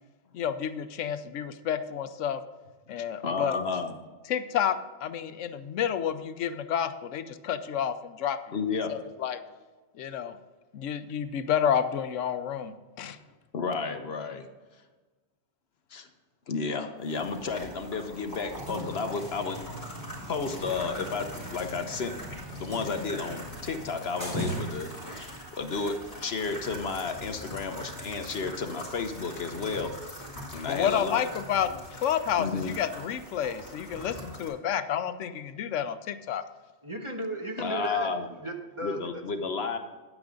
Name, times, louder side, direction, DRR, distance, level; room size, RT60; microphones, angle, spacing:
voice 1, 0.3-2.4 2.9-3.6 4.3-8.4 8.9-9.4 10.0-10.4 10.7-13.2 30.7-36.4, left 9 dB, 85° left, 11 dB, 1.0 m, -30 dB
voice 2, 3.2-3.9 8.5-8.9 13.5-14.5 15.9-16.1 16.5-19.6 20.3-25.3 25.5-29.9 30.5-31.3 32.4-32.7 37.6-38.2 38.8-39.8, left 4 dB, 60° left, 7 dB, 1.1 m, -32 dB
sound 1, 17.0-34.5, equal, 35° left, 3.3 m, -43 dB
sound 2, 18.5-25.1, equal, 45° right, 3.7 m, -40 dB
voice 3, 36.8-39.2, right 1 dB, 25° right, 2 dB, 1.2 m, -36 dB
10.0 x 9.5 x 3.8 m, 1.3 s
omnidirectional pair, 1.2 m